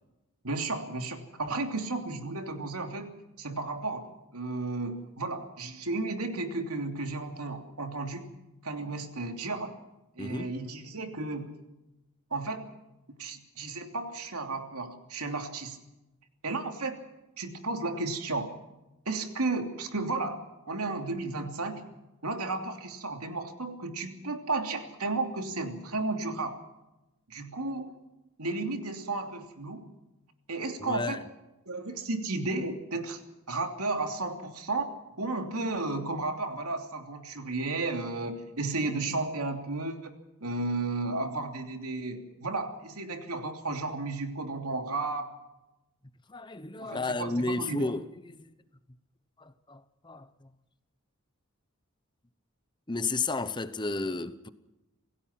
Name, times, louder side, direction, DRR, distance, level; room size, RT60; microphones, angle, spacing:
voice 1, 0.4-3.1 3.4-8.3 8.6-9.7 10.2-11.5 12.3-12.7 13.2-15.8 16.4-17.0 17.4-18.5 19.0-20.4 20.7-21.8 22.2-26.6 27.3-27.9 28.4-29.9 30.5-31.2 31.7-33.2 33.5-34.9 35.2-40.1 40.4-45.3 46.8-47.9, right 3 dB, 85° right, 3.0 m, -33 dB
voice 2, 10.2-10.5 30.8-31.2 46.3-48.4 49.4-50.3 52.9-54.5, left 3 dB, 20° left, 0.9 m, -32 dB
27.5 x 17.0 x 5.9 m
head